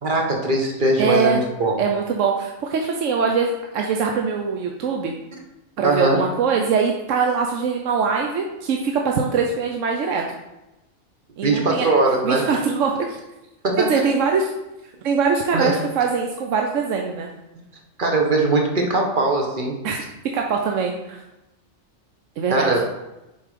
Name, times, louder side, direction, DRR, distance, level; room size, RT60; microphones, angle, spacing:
voice 1, 0.0-1.7 5.8-6.2 11.4-12.4 13.6-13.9 15.5-15.8 18.0-19.8 22.5-22.8, right 2 dB, 40° right, 1 dB, 1.3 m, -20 dB
voice 2, 1.0-1.4 1.8-5.1 5.8-10.2 11.4-11.9 12.2-13.2 13.8-14.5 15.0-17.3 19.8-20.0 20.3-21.2 22.4-22.7, right 5 dB, 70° right, 1 dB, 1.0 m, -22 dB
6.9 x 4.6 x 5.1 m, 0.96 s
omnidirectional pair, 1.4 m